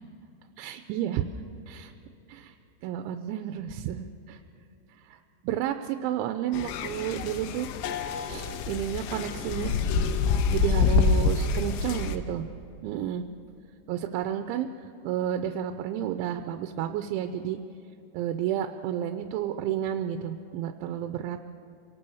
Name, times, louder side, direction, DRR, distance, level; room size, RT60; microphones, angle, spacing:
voice 1, 0.6-1.3 1.7-1.9 2.3-2.5 2.8-4.4 5.0-7.7 8.3-9.8 10.5-12.5 12.8-13.2 13.9-14.7 15.0-17.6 18.1-21.4, right 10 dB, 85° right, 7 dB, 3.1 m, -31 dB
sound 1, 6.5-12.2, left 5 dB, 85° left, 3.2 m, -26 dB
27.5 x 18.5 x 7.0 m, 2.9 s
omnidirectional pair, 5.3 m